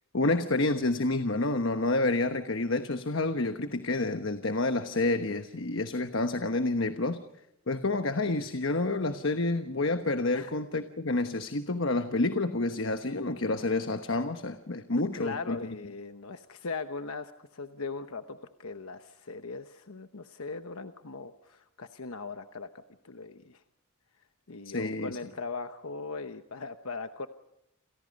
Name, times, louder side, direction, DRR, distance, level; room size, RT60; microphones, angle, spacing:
voice 1, 0.1-7.2 7.7-15.6 24.6-25.2, left 2 dB, 60° left, 8 dB, 1.2 m, -29 dB
voice 2, 15.1-22.7 23.0-23.6 24.5-27.3, left 4 dB, 80° left, 8 dB, 1.1 m, -39 dB
28.5 x 28.5 x 5.4 m, 0.80 s
head